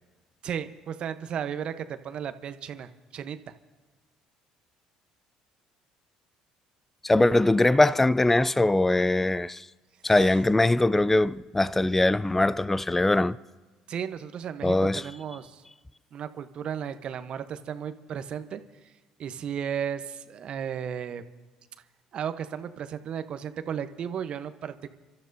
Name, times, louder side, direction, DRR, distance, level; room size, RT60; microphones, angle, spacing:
voice 1, 0.4-3.4 10.0-10.1 13.9-15.6 16.1-18.9 19.2-21.2 22.1-24.9, right 8 dB, 55° right, 0.9 m, -34 dB
voice 2, 7.0-9.7 10.0-13.4 14.6-15.0, left 2 dB, 10° left, 0.4 m, -22 dB
29.5 x 13.0 x 2.7 m
hypercardioid pair, 65°, 2 cm